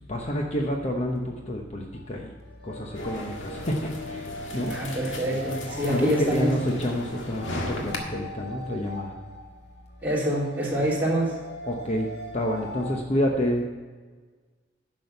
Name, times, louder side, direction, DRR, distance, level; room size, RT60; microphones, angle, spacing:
voice 1, 0.1-2.2 2.6-4.2 4.5-4.7 5.9-9.1 10.8-10.9 11.7-12.1 12.3-13.6, equal, 35° left, 1 dB, 0.9 m, -28 dB
sound 1, 1.9-12.9, equal, 60° left, 2.4 m, -41 dB
sound 2, 2.9-8.0, left 1 dB, 85° left, 1.7 m, -36 dB
voice 2, 4.7-6.5 10.0-11.4, right 1 dB, 10° right, -7 dB, 3.2 m, -26 dB
10.5 x 6.3 x 6.7 m, 1.4 s
head